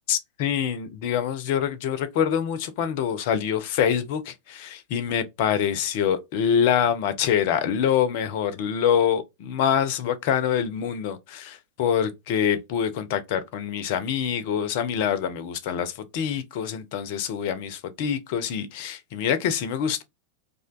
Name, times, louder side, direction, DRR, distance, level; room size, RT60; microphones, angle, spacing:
voice 1, 0.1-20.0, left 8 dB, 50° left, 0.4 m, -25 dB
2.4 x 2.2 x 2.3 m
figure-of-eight pair, 90°, 0 cm